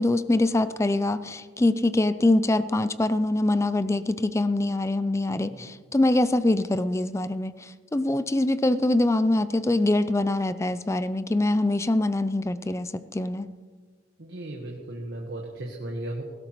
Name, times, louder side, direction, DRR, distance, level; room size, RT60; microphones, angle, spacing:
voice 1, 0.0-7.5 7.9-13.5, left 2 dB, 15° left, 13 dB, 0.4 m, -24 dB
voice 2, 5.4-5.7 14.2-16.2, right 1 dB, 85° right, 0 dB, 1.4 m, -36 dB
18.0 x 16.0 x 3.1 m, 1.5 s
head